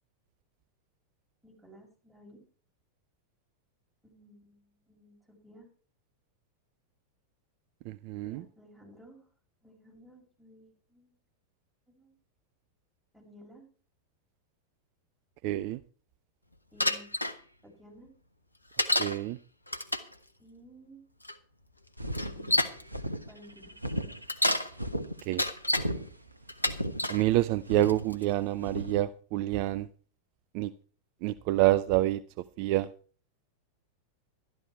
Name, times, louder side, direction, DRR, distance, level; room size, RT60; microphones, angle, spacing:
voice 1, 1.4-2.4 4.0-5.7 8.2-9.2 9.6-11.1 11.9-12.1 13.1-13.7 16.7-17.1 17.6-18.1 20.4-21.1 23.2-23.7, equal, ahead, 6.4 m, -55 dB
voice 2, 7.9-8.4 15.4-15.8 19.0-19.4 25.3-25.4 27.1-29.9 30.5-30.7 31.2-32.2 32.6-32.9, right 15 dB, 45° right, 0.5 m, -27 dB
Bicycle, 16.8-17.3 18.8-19.2 19.7-20.1 21.2-21.3 22.1-22.8 24.1-24.7 25.2-25.9 26.5-27.2 27.8-28.2, left 1 dB, 85° left, 1.1 m, -28 dB
sound 1, 22.0-29.0, equal, 85° right, 1.1 m, -37 dB
12.5 x 12.5 x 4.5 m
figure-of-eight pair, 90°, 0 cm